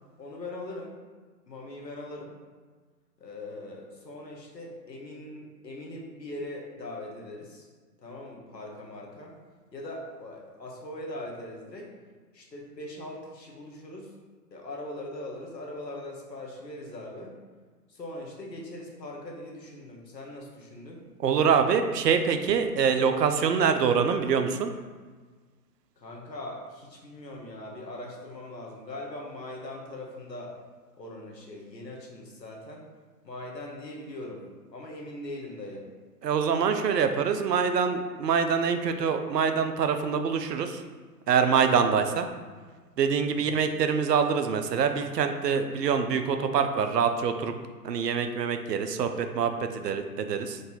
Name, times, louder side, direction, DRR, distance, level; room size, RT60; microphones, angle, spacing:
voice 1, 0.2-0.9 1.5-2.4 3.2-7.7 8.0-9.4 9.7-11.9 12.3-14.1 14.5-17.3 17.9-21.1 26.0-30.6 31.0-32.9 33.2-34.4 34.7-35.9 43.4-43.6, left 1 dB, 90° left, -1 dB, 1.1 m, -41 dB
voice 2, 21.2-24.7 36.2-40.8 41.3-42.3 43.0-47.5 47.8-50.6, right 6 dB, 80° right, 7 dB, 0.6 m, -25 dB
3.8 x 2.6 x 3.8 m, 1.4 s
figure-of-eight pair, 130°, 48 cm